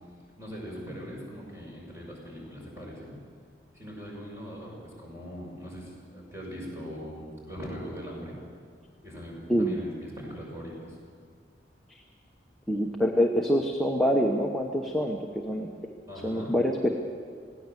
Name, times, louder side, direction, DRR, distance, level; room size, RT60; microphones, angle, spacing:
voice 1, 0.4-3.3 3.7-8.4 9.0-11.1 16.1-16.6, equal, 15° right, -3 dB, 6.5 m, -41 dB
voice 2, 9.5-9.8 12.7-15.7 16.2-16.9, equal, ahead, 0 dB, 1.0 m, -25 dB
20.5 x 17.0 x 7.6 m, 2.1 s
head